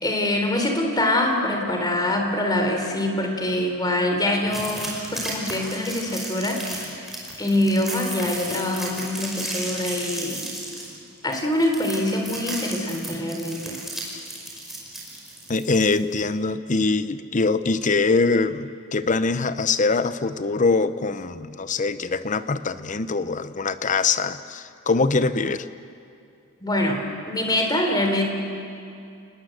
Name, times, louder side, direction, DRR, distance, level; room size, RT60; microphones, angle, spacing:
voice 1, 0.0-7.0 7.4-10.4 11.2-13.8 26.6-27.0 27.3-28.3, left 1 dB, 20° left, 3 dB, 3.5 m, -24 dB
sound 1, 4.5-16.2, right 1 dB, ahead, 5.3 m, -34 dB
voice 2, 15.5-25.7, left 3 dB, 35° left, 13 dB, 0.8 m, -23 dB
29.5 x 19.5 x 7.9 m, 2.5 s
head